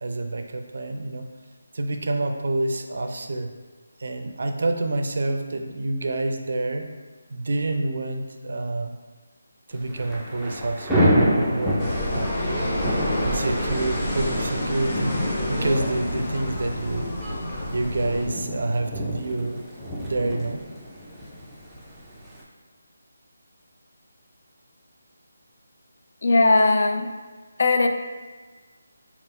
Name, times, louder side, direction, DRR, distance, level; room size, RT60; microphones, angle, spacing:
voice 1, 0.0-1.3 1.7-3.5 4.0-6.9 7.3-9.0 9.7-11.8 12.1-12.7 13.2-15.1 15.5-17.2 17.7-19.7 20.0-20.6, right 2 dB, 60° right, 5 dB, 0.4 m, -28 dB
Thunder / Rain, 9.8-22.4, equal, ahead, 0.4 m, -28 dB
sound 1, 11.8-18.3, left 1 dB, 20° left, 0.8 m, -28 dB
voice 2, 26.2-27.1 27.6-27.9, left 2 dB, 60° left, 5 dB, 0.4 m, -18 dB
3.5 x 2.3 x 4.2 m, 1.4 s
figure-of-eight pair, 165°, 0 cm